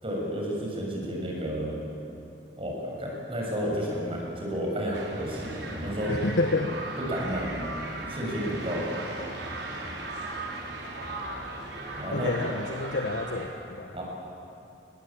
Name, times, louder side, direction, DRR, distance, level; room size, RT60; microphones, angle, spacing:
voice 1, 0.0-1.7 2.6-6.2 7.1-7.5 8.1-8.8 11.9-12.3 13.9-14.0, equal, 30° right, -2 dB, 7.1 m, -31 dB
sound 1, 4.9-13.5, right 2 dB, 80° right, 5.5 m, -37 dB
voice 2, 6.1-6.8 12.1-14.0, left 2 dB, 80° left, 5 dB, 1.3 m, -29 dB
28.5 x 22.0 x 8.9 m, 2.9 s
head